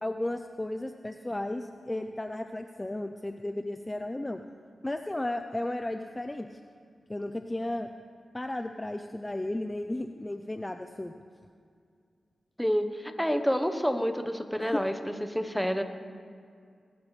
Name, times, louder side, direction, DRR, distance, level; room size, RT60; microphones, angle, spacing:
voice 1, 0.0-4.4 4.8-6.6 7.1-7.9 8.3-11.1 14.6-14.8, left 1 dB, 20° left, 7 dB, 0.6 m, -34 dB
voice 2, 12.6-14.9 15.2-15.8, equal, 5° left, 7 dB, 1.1 m, -28 dB
19.5 x 12.5 x 3.3 m, 2.2 s
cardioid pair, 55°, 0 cm